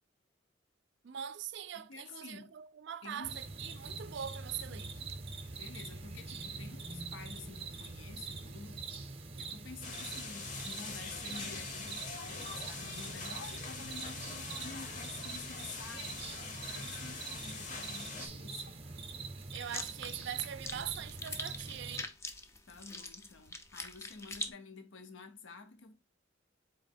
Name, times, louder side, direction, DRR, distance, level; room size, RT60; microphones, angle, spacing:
voice 1, 1.0-4.9 19.5-22.1, right 9 dB, 65° right, 0.4 m, -42 dB
voice 2, 1.9-2.5 3.0-3.5 4.7-5.1 5.5-8.9 9.4-16.3 16.7-18.7 22.7-25.9, left 4 dB, 70° left, 0.7 m, -50 dB
sound 1, 3.2-22.0, right 4 dB, 30° right, 0.6 m, -44 dB
sound 2, 9.8-18.3, left 4 dB, 40° left, 0.8 m, -44 dB
sound 3, 19.5-24.5, left 2 dB, 15° left, 0.4 m, -44 dB
4.1 x 3.0 x 4.2 m
head